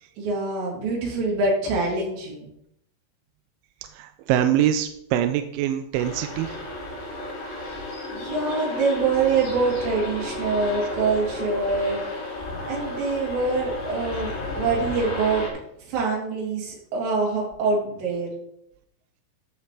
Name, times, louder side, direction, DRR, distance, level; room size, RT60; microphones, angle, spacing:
voice 1, 0.2-2.5 8.1-12.0 12.7-14.3 14.6-15.4 15.9-18.3, right 4 dB, 60° right, -4 dB, 4.9 m, -25 dB
voice 2, 3.9-6.6, right 11 dB, 85° right, 8 dB, 2.8 m, -24 dB
sound 1, 5.9-15.5, left 2 dB, 65° left, 4.3 m, -32 dB
13.5 x 6.8 x 3.3 m, 0.76 s
omnidirectional pair, 5.8 m